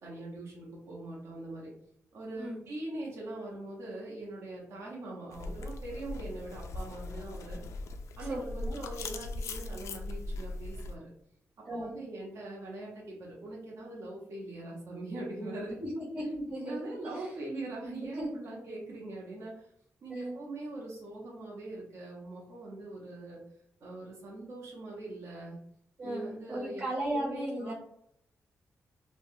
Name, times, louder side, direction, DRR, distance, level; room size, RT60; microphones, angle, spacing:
voice 1, 0.0-1.7 2.1-7.6 8.2-11.1 11.7-15.8 16.6-19.7 20.0-23.4 23.8-25.6 26.0-27.7, right 2 dB, 70° right, -4 dB, 0.8 m, -42 dB
sound 1, 5.3-11.0, left 2 dB, 75° left, 0.3 m, -39 dB
voice 2, 11.6-12.0 15.8-17.3 18.0-18.3 20.1-20.3 26.0-27.7, right 1 dB, 45° right, -7 dB, 1.4 m, -36 dB
3.2 x 2.2 x 2.7 m, 0.71 s
wide cardioid pair, 150°, 5 cm